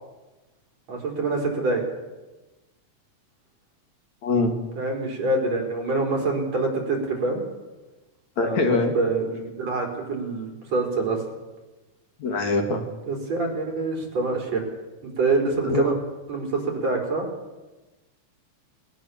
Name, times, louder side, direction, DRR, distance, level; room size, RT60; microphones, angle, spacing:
voice 1, 0.9-1.8 4.8-7.4 8.4-11.2 13.1-14.6 15.0-15.9 16.3-17.3, right 3 dB, 55° right, 1 dB, 5.4 m, -26 dB
voice 2, 4.2-4.5 8.4-9.0 12.2-12.8 15.6-16.0, left 3 dB, 60° left, 4 dB, 3.1 m, -23 dB
20.5 x 19.0 x 7.1 m, 1.1 s
omnidirectional pair, 3.7 m